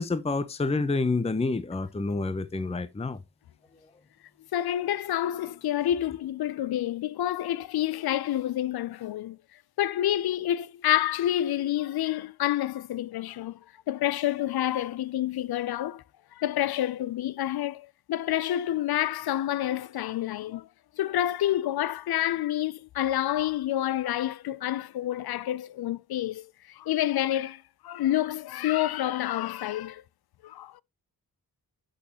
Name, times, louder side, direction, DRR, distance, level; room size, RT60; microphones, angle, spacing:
voice 1, 0.0-3.2, left 3 dB, 15° left, 0.7 m, -28 dB
voice 2, 4.5-9.4 9.8-13.6 13.9-16.0 16.3-20.7 21.0-30.0 30.4-30.8, left 12 dB, 80° left, 0.5 m, -28 dB
10.5 x 6.4 x 2.9 m
cardioid pair, 75°, 37 cm